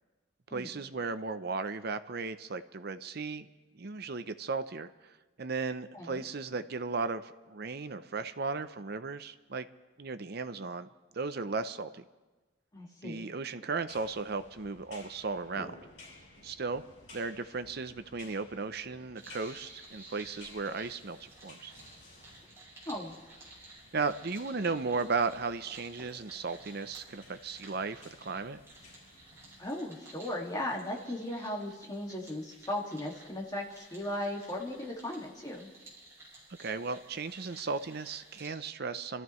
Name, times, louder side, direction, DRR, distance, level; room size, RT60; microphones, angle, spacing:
voice 1, 0.5-3.5 3.7-4.9 5.4-9.7 10.0-12.0 13.0-15.8 16.4-16.8 17.1-21.7 23.9-28.6 36.6-39.2, right 4 dB, 55° right, 11 dB, 0.7 m, -35 dB
voice 2, 5.9-6.2 12.7-13.2 22.9-23.1 29.6-35.7, left 1 dB, 20° left, -1 dB, 2.1 m, -37 dB
sound 1, 13.9-29.6, left 2 dB, 70° left, 6.6 m, -56 dB
sound 2, 19.2-38.5, right 2 dB, 15° right, 6.4 m, -54 dB
27.0 x 14.0 x 3.2 m, 1.2 s
head